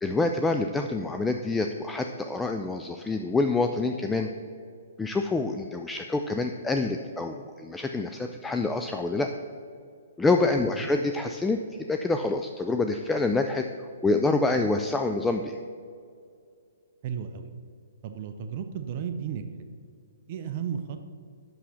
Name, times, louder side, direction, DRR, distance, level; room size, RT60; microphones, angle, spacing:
voice 1, 0.0-4.3 5.0-9.3 10.2-11.6 11.9-13.7 14.0-15.6, left 3 dB, 5° left, 5 dB, 0.3 m, -26 dB
voice 2, 17.0-17.5 18.0-19.4 20.3-21.1, right 8 dB, 40° right, 8 dB, 0.6 m, -34 dB
6.2 x 5.9 x 6.9 m, 2.3 s
hypercardioid pair, 145°, 0 cm